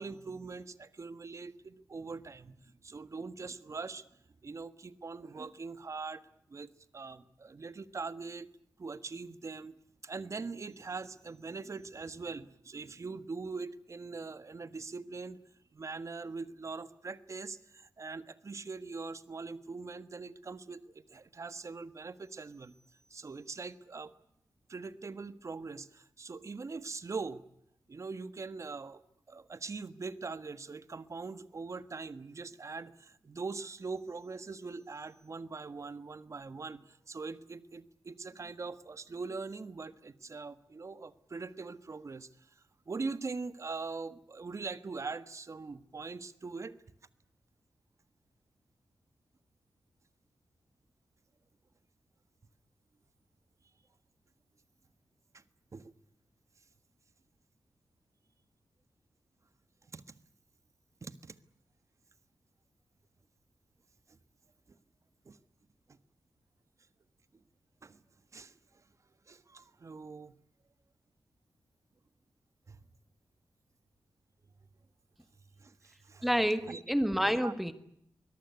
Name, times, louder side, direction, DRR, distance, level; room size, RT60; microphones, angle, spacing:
voice 1, 0.0-4.0 4.4-6.2 6.5-8.5 8.8-9.7 10.0-15.4 15.7-22.8 23.1-24.1 24.7-27.4 27.9-29.0 29.3-42.3 42.9-46.8 55.3-55.4 55.7-55.9 59.9-60.1 61.0-61.4 64.7-64.8 65.2-65.4 65.9-66.0 67.8-68.0 68.3-68.5 69.3-70.3 72.7-72.8 75.6-76.3 76.6-76.8 77.2-77.5, right 4 dB, 40° right, 1.4 m, -42 dB
voice 2, 76.2-77.7, equal, ahead, 1.7 m, -28 dB
24.0 x 21.5 x 9.6 m
wide cardioid pair, 145°, 8 cm